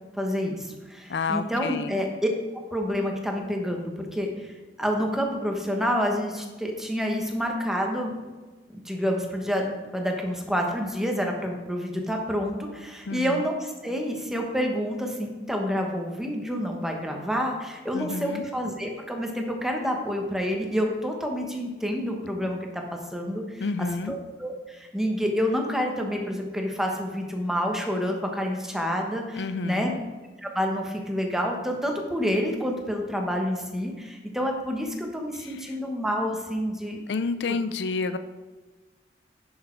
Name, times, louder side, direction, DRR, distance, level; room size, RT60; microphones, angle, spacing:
voice 1, 0.1-8.1 8.7-22.8 23.1-23.7 24.1-29.9 30.4-37.0, equal, 5° right, 1 dB, 1.2 m, -28 dB
voice 2, 1.1-1.9 13.1-13.4 17.9-18.4 23.6-24.1 29.4-30.0 35.4-35.8 37.1-38.2, left 4 dB, 75° left, 12 dB, 0.5 m, -30 dB
10.5 x 6.4 x 4.6 m, 1.3 s
head